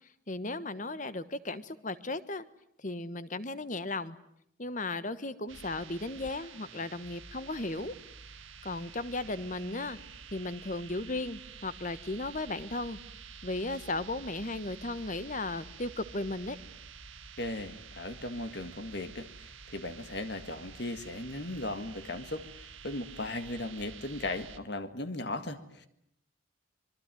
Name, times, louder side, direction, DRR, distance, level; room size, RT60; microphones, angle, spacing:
voice 1, 0.3-2.4 2.8-4.2 4.6-7.9 8.6-10.0 10.3-13.0 13.4-16.6, left 2 dB, 40° left, 14 dB, 1.3 m, -35 dB
sound 1, 5.5-24.6, right 6 dB, 75° right, 2.0 m, -49 dB
voice 2, 17.4-25.9, left 2 dB, 55° left, 10 dB, 1.8 m, -37 dB
26.0 x 22.5 x 9.2 m, 0.73 s
head